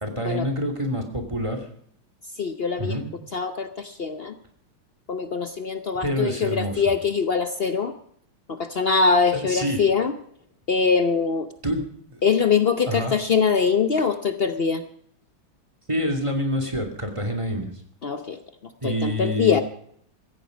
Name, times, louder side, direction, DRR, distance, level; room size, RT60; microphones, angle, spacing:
voice 1, 0.0-1.6 2.8-3.1 6.0-6.8 9.3-9.8 11.6-12.2 12.8-13.1 15.9-17.7 18.8-19.6, equal, 15° right, 3 dB, 2.6 m, -27 dB
voice 2, 2.4-3.0 3.3-4.3 5.1-7.9 8.5-10.1 10.7-11.5 12.2-14.8 18.0-18.4 18.8-19.6, left 5 dB, 80° left, 9 dB, 0.5 m, -23 dB
16.5 x 14.5 x 5.2 m, 0.64 s
omnidirectional pair, 2.3 m